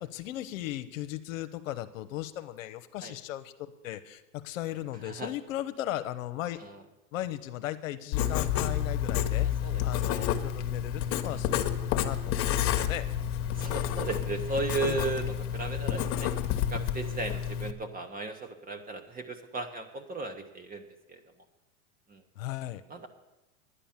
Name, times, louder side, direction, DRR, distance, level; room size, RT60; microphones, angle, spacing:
voice 1, 0.0-6.6 7.1-13.0 14.8-15.0 22.4-22.8, left 13 dB, 70° left, 10 dB, 0.9 m, -37 dB
Writing, 8.1-17.7, left 10 dB, 45° left, 1.1 m, -30 dB
voice 2, 12.4-12.8 13.5-16.3 16.7-21.2 22.1-22.2 22.9-23.1, right 3 dB, 20° right, 6 dB, 1.1 m, -36 dB
10.0 x 10.0 x 7.3 m, 0.98 s
hypercardioid pair, 110°, 41 cm